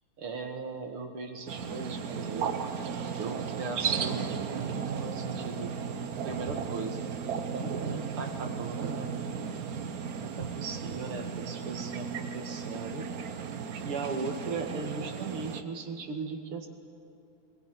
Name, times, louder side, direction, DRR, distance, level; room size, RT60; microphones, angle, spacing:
voice 1, 0.2-2.6 2.9-5.7 6.2-7.0 7.5-9.1 10.1-13.1 13.8-16.7, right 4 dB, 85° right, 4 dB, 2.7 m, -38 dB
sound 1, 1.5-15.6, right 6 dB, 50° right, 1.2 m, -35 dB
21.5 x 20.0 x 9.5 m, 2.7 s
omnidirectional pair, 2.4 m